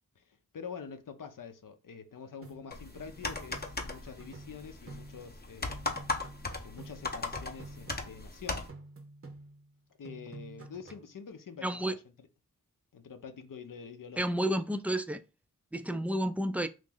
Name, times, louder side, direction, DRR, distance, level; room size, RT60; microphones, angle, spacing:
voice 1, 0.2-6.3 6.6-8.7 10.0-12.3 12.9-14.3, left 6 dB, 70° left, 0.6 m, -46 dB
sound 1, 2.4-5.4 5.7-8.4 8.7-9.8 10.0-11.1, right 2 dB, 40° right, 0.7 m, -50 dB
sound 2, 2.7-8.7, left 3 dB, 30° left, 0.7 m, -38 dB
voice 2, 11.6-11.9 14.2-15.2 15.7-16.7, right 1 dB, 5° right, 0.3 m, -30 dB
2.9 x 2.5 x 3.7 m
cardioid pair, 45°, 34 cm